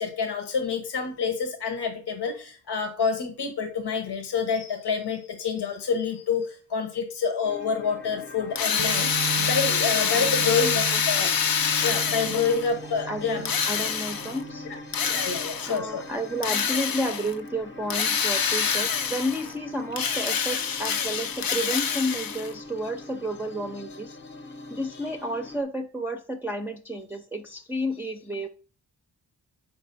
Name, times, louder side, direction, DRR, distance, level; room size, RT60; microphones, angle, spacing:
voice 1, 0.0-11.3 11.8-13.4 14.9-16.0, left 5 dB, 85° left, 6 dB, 1.0 m, -28 dB
sound 1, 7.4-25.6, left 2 dB, 30° left, 0.7 m, -43 dB
Drill, 8.6-12.7 13.4-14.4 14.9-15.8 16.4-17.3 17.9-19.5 19.9-22.5, left 7 dB, 65° left, 0.5 m, -26 dB
sound 2, 8.8-16.1, right 7 dB, 80° right, 0.6 m, -38 dB
voice 2, 10.0-11.0 12.2-12.4 13.0-14.7 15.0-15.2 15.6-24.2 24.7-28.5, equal, 5° right, 2 dB, 0.5 m, -31 dB
6.0 x 4.9 x 4.0 m, 0.39 s
wide cardioid pair, 80°, 39 cm